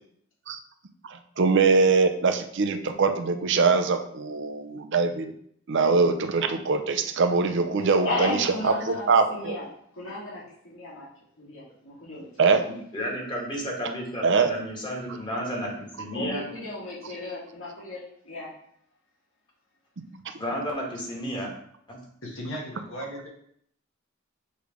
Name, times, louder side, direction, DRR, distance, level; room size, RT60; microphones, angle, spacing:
voice 1, 1.4-5.3 5.7-9.6 12.4-12.6 14.2-14.5, right 4 dB, 60° right, 7 dB, 0.6 m, -22 dB
voice 2, 7.8-9.7 9.9-11.1 11.4-12.7 16.1-18.5, left 2 dB, 85° left, -7 dB, 2.2 m, -34 dB
voice 3, 12.9-16.5 20.4-21.5 21.9-22.0, equal, 25° left, -2 dB, 1.7 m, -32 dB
voice 4, 22.2-23.3, equal, 70° left, -1 dB, 1.7 m, -36 dB
6.6 x 3.3 x 5.1 m, 0.68 s
head